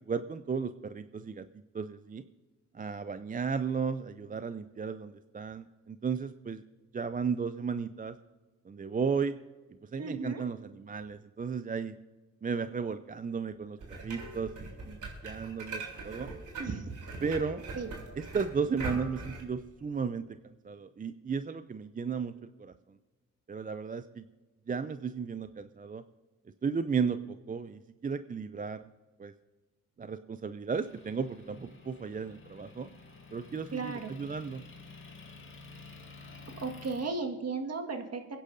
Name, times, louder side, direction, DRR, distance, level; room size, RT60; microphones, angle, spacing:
voice 1, 0.1-1.4 1.7-2.2 2.7-6.6 6.9-8.2 8.7-9.3 9.9-11.9 12.4-13.8 14.0-16.3 17.2-17.6 18.2-20.3 20.6-22.7 23.5-24.2 24.7-26.0 26.6-28.8 29.2-29.3 30.0-32.9 33.3-34.6, right 5 dB, 25° right, 12 dB, 0.5 m, -34 dB
voice 2, 10.0-10.4 16.6-16.9 17.7-17.9 33.7-34.1 36.6-38.4, right 4 dB, 50° right, 4 dB, 1.8 m, -35 dB
sound 1, 13.8-19.4, right 3 dB, 65° right, 3.5 m, -41 dB
Motor vehicle (road) / Engine, 30.7-37.1, left 3 dB, 35° left, 2.1 m, -51 dB
24.0 x 10.0 x 2.6 m, 1.2 s
supercardioid pair, 50°, 33 cm